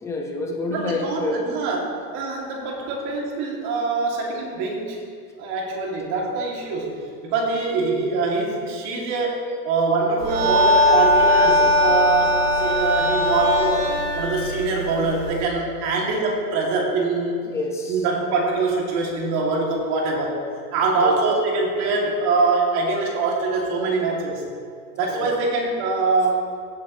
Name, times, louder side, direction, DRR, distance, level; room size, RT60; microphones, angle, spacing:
voice 1, 0.0-1.4 11.5-11.7 17.5-18.0 21.0-21.2 25.1-25.3, left 2 dB, 5° left, 1 dB, 0.3 m, -28 dB
voice 2, 0.7-5.0 5.4-17.4 17.9-20.4 20.7-24.4 25.0-26.4, right 3 dB, 50° right, -2 dB, 2.7 m, -24 dB
sound 1, 10.2-15.4, left 1 dB, 70° right, 2.9 m, -20 dB
16.0 x 8.4 x 3.2 m, 2.2 s
supercardioid pair, 145°, 48 cm